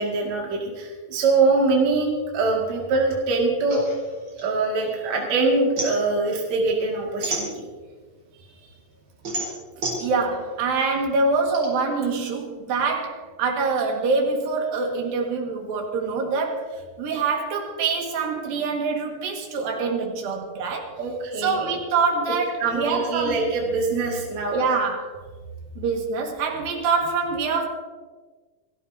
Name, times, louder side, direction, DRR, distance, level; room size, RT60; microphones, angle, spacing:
voice 1, 0.0-3.8 4.4-7.7 21.0-21.8 22.6-24.6, right 3 dB, 55° right, -2 dB, 3.3 m, -23 dB
sound 1, 3.7-5.2 5.5-8.0 8.5-11.7, right 2 dB, 35° right, 5.0 m, -32 dB
voice 2, 10.0-16.7 17.0-20.9 21.4-23.4 24.5-25.1 25.8-27.7, right 4 dB, 85° right, 1 dB, 3.6 m, -25 dB
29.5 x 13.5 x 2.8 m, 1.4 s
omnidirectional pair, 4.1 m